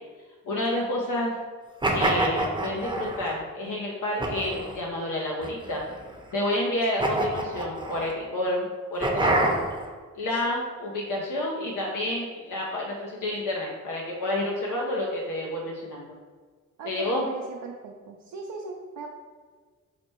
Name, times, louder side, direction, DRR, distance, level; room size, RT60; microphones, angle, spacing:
voice 1, 0.5-1.3 1.9-5.8 6.3-9.6 10.2-16.1 16.8-17.3, left 1 dB, 75° left, -2 dB, 0.7 m, -29 dB
sound 1, 1.8-3.3 4.2-4.8 5.4-6.1 7.0-8.1 9.0-9.9, right 2 dB, 15° right, 0.7 m, -26 dB
voice 2, 16.8-19.1, right 4 dB, 70° right, 0 dB, 0.6 m, -39 dB
4.9 x 2.1 x 4.4 m, 1.5 s
cardioid pair, 60°, 32 cm